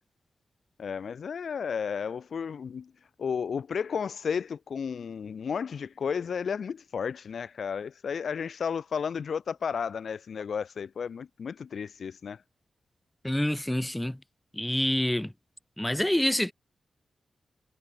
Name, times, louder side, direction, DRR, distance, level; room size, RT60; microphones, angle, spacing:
voice 1, 0.8-2.9 3.2-12.4, left 6 dB, 75° left, 1.6 m, -33 dB
voice 2, 13.2-14.2 14.5-15.3 15.8-16.5, left 1 dB, 10° left, 0.8 m, -27 dB
cardioid pair, 50°, 0 cm